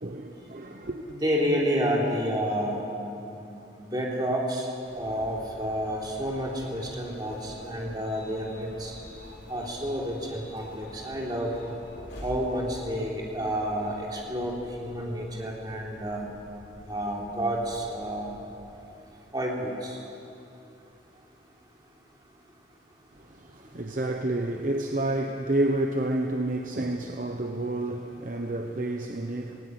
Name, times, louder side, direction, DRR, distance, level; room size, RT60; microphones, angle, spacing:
voice 1, 0.0-1.1 23.1-29.6, right 1 dB, 45° right, 0.9 m, -30 dB
voice 2, 1.1-2.8 3.4-4.7 4.9-8.9 9.5-11.5 12.2-16.2 16.9-18.3 19.3-20.0, equal, 20° right, 3.3 m, -30 dB
sound 1, 4.8-18.7, equal, 80° left, 6.3 m, -47 dB
17.5 x 17.5 x 9.7 m
head